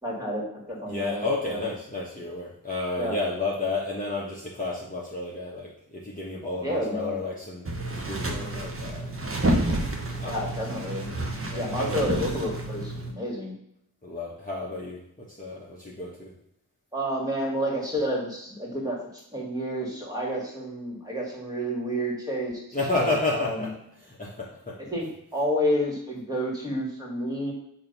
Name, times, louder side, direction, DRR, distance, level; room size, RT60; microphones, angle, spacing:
voice 1, 0.0-1.7 3.0-3.2 6.6-7.2 10.2-11.1 11.5-13.5 16.9-19.0 19.3-22.6 23.0-23.7 24.9-27.5, equal, 10° right, -3 dB, 2.2 m, -30 dB
voice 2, 0.9-7.7 7.9-9.1 10.2-10.5 11.5-12.0 14.0-16.3 22.7-23.7 24.0-24.8, left 2 dB, 20° left, -5 dB, 1.2 m, -31 dB
sound 1, 7.6-13.1, right 1 dB, 35° right, 1.0 m, -29 dB
6.5 x 3.0 x 5.4 m, 0.76 s
wide cardioid pair, 80°, 36 cm